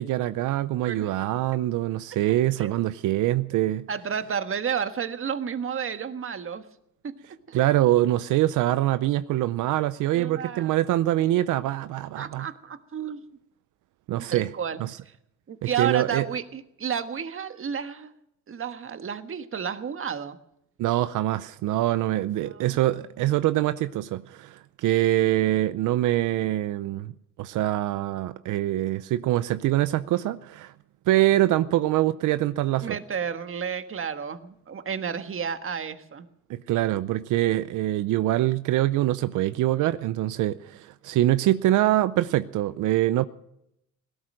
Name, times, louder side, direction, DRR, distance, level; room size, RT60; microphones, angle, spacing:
voice 1, 0.0-3.9 7.5-12.5 14.1-14.5 14.8-15.0 15.6-16.2 20.8-27.1 27.4-30.7 31.1-32.9 36.5-43.2, right 15 dB, 85° right, 0.6 m, -24 dB
voice 2, 2.3-2.9 3.9-6.7 7.0-7.1 7.5-7.6 10.1-10.7 12.2-13.2 14.3-14.8 15.0-15.1 15.5-18.1 18.5-20.4 22.4-22.8 32.8-36.3, right 7 dB, 45° right, 1.5 m, -31 dB
17.5 x 13.0 x 6.4 m
cardioid pair, 90°, 30 cm